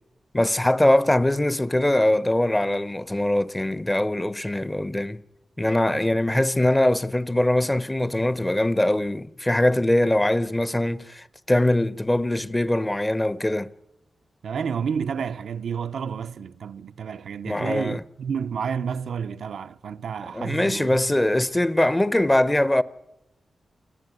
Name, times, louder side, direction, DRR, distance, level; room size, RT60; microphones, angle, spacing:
voice 1, 0.3-5.2 5.6-13.7 17.5-18.0 20.3-22.8, left 1 dB, 15° left, 0.8 m, -22 dB
voice 2, 6.3-6.7 14.4-21.0, right 7 dB, 85° right, 0.7 m, -30 dB
29.5 x 10.5 x 9.4 m
cardioid pair, 70°, 0 cm